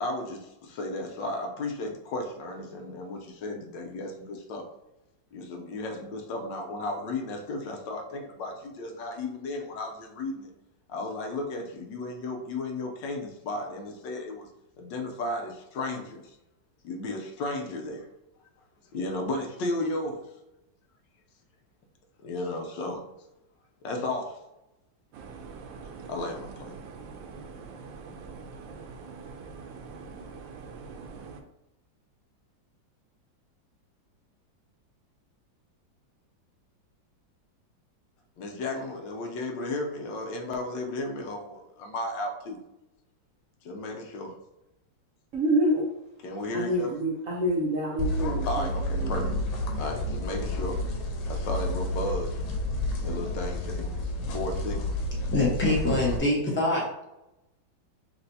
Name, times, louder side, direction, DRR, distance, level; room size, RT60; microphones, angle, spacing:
voice 1, 0.0-4.6 5.3-10.5 10.9-14.5 14.8-16.4 16.8-18.1 18.9-20.2 22.2-23.0 23.8-24.4 26.1-26.7 38.4-42.6 43.6-44.3 46.2-46.9 48.5-49.3 49.8-50.8 51.3-52.4 53.0-54.9, left 2 dB, 75° left, 2 dB, 1.3 m, -34 dB
sound 1, 25.1-31.4, right 5 dB, 75° right, 1.2 m, -43 dB
voice 2, 45.3-45.9 46.5-48.7 48.9-49.3, equal, 60° right, -3 dB, 0.9 m, -27 dB
sound 2, 48.0-56.2, left 1 dB, 90° left, 1.5 m, -30 dB
voice 3, 55.3-56.9, left 2 dB, 10° left, -4 dB, 0.6 m, -24 dB
6.3 x 2.6 x 2.7 m, 0.90 s
omnidirectional pair, 2.1 m